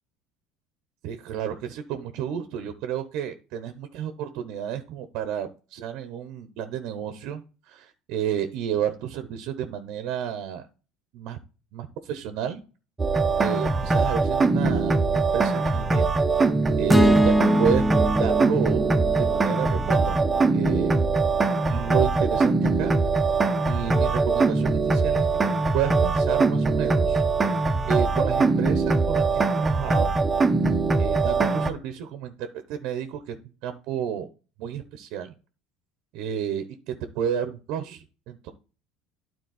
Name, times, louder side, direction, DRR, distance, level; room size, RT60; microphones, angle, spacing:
voice 1, 1.0-10.6 11.1-11.4 11.7-12.6 13.4-16.1 16.4-17.9 18.2-18.9 19.2-20.2 20.5-21.0 21.6-22.9 23.2-23.3 23.7-25.3 25.7-27.2 27.9-30.2 31.0-33.4 33.6-34.3 34.6-35.3 36.1-38.5, right 9 dB, 65° right, 9 dB, 0.8 m, -31 dB
sound 1, 13.0-31.7, right 3 dB, 15° right, 0.7 m, -22 dB
sound 2, 16.9-21.2, equal, 5° left, 0.3 m, -24 dB
9.3 x 4.1 x 4.1 m, 0.35 s
supercardioid pair, 120°, 0 cm